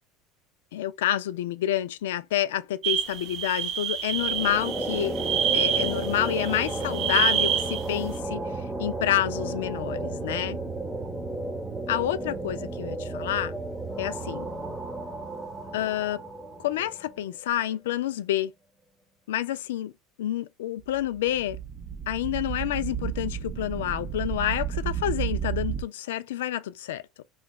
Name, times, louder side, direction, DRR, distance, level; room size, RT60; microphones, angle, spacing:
voice 1, 0.7-5.2 5.5-10.6 11.9-13.5 14.0-14.5 15.7-16.2 16.6-18.5 19.3-19.9 20.2-21.6 22.1-27.0, left 12 dB, 90° left, 0.3 m, -28 dB
sound 1, 2.8-7.9, right 8 dB, 55° right, 0.8 m, -28 dB
sound 2, 4.1-17.2, right 2 dB, 10° right, 0.9 m, -33 dB
sound 3, 20.8-25.8, right 10 dB, 40° right, 0.4 m, -32 dB
3.0 x 2.3 x 2.3 m
supercardioid pair, 100°, 0 cm